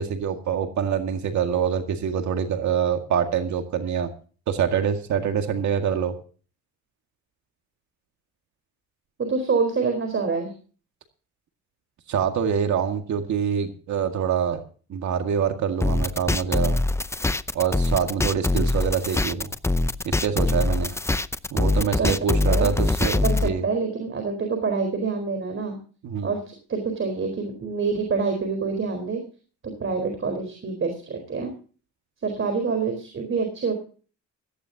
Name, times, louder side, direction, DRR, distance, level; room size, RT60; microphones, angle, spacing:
voice 1, 0.0-4.1 4.5-6.1 12.1-14.6 14.9-16.8 17.5-19.5 20.0-21.0 21.5-23.6 26.0-26.3, right 7 dB, 70° right, 5 dB, 2.0 m, -25 dB
voice 2, 9.2-10.5 22.0-22.1 22.5-22.7 23.2-25.8 26.2-29.2 29.6-31.5 32.2-33.7, right 4 dB, 45° right, 5 dB, 4.5 m, -26 dB
sound 1, 15.8-23.5, left 2 dB, 10° left, 0.6 m, -23 dB
17.0 x 15.0 x 2.8 m, 0.40 s
cardioid pair, 90°, 30 cm